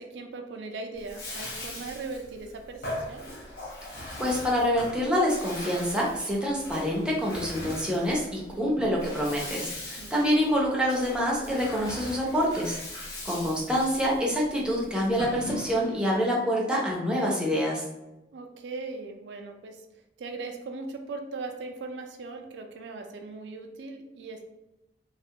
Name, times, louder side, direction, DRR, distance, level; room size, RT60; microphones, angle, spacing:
voice 1, 0.0-3.2 8.5-9.0 10.0-10.4 18.3-19.9 20.2-24.4, right 3 dB, 70° right, 4 dB, 0.4 m, -39 dB
Bathtub (filling or washing), 1.0-16.1, left 1 dB, 60° left, 0.7 m, -40 dB
voice 2, 4.2-12.8 13.2-17.8, equal, 5° right, -4 dB, 0.5 m, -26 dB
2.3 x 2.1 x 2.7 m, 0.96 s
head